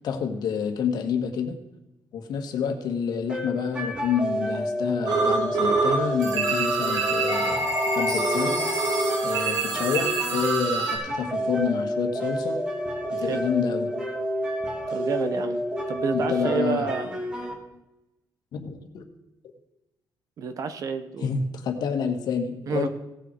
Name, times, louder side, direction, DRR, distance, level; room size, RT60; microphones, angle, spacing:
voice 1, 0.0-1.6 2.1-8.7 9.2-12.6 13.1-13.9 16.1-16.9 18.5-19.0 21.2-22.9, left 6 dB, 70° left, 6 dB, 1.6 m, -28 dB
sound 1, 3.3-17.5, equal, 15° right, 1.8 m, -29 dB
sound 2, 5.1-6.0 6.2-11.0, right 3 dB, 70° right, 2.9 m, -26 dB
voice 2, 14.9-15.6 15.9-17.1 20.4-21.3 22.7-22.9, right 6 dB, 50° right, 10 dB, 1.0 m, -29 dB
16.5 x 7.0 x 4.6 m, 0.94 s
cardioid pair, 160°, 7 cm